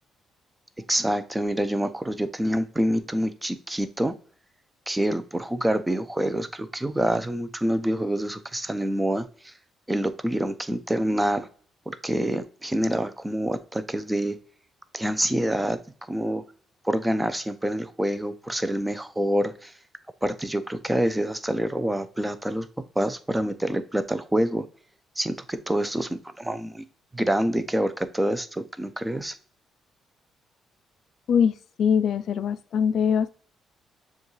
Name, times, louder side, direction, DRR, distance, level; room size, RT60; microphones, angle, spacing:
voice 1, 0.9-4.1 4.9-9.5 9.9-11.5 11.9-14.4 14.9-15.8 16.1-16.4 16.8-19.7 20.2-22.7 23.0-24.7 25.2-26.8 27.1-29.3, right 1 dB, 10° right, 11 dB, 0.5 m, -26 dB
voice 2, 31.3-33.3, left 7 dB, 65° left, 14 dB, 0.3 m, -23 dB
6.9 x 2.4 x 3.1 m, 0.42 s
cardioid pair, 90°, 0 cm